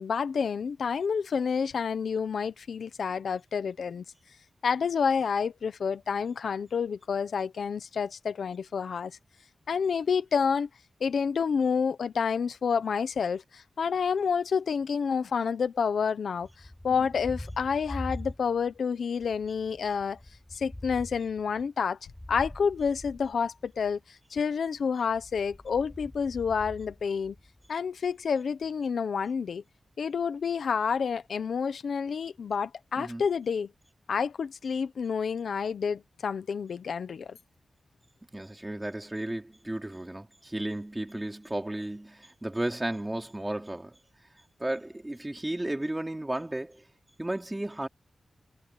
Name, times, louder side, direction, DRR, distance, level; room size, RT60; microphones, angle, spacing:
voice 1, 0.0-4.0 4.6-9.1 9.7-10.7 11.0-20.2 20.5-22.0 22.3-27.3 27.7-29.6 30.0-33.7 34.1-37.4, left 6 dB, 85° left, 1.1 m, -29 dB
Thunder, 16.4-18.8 19.2-24.0 25.0-27.7, left 1 dB, 10° left, 7.3 m, -44 dB
voice 2, 38.3-44.0 44.6-46.8 47.2-47.9, right 1 dB, 15° right, 3.3 m, -34 dB
wide cardioid pair, 155°, 0 cm